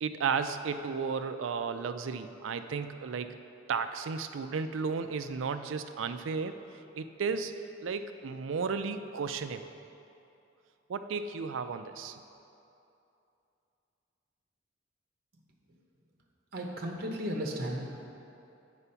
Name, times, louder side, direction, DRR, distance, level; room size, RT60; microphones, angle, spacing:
voice 1, 0.0-3.4 3.7-6.6 7.0-9.7 10.9-12.2, right 5 dB, 75° right, 9 dB, 0.4 m, -34 dB
voice 2, 16.5-18.1, equal, 55° right, 0 dB, 0.9 m, -35 dB
8.2 x 4.9 x 5.6 m, 2.7 s
head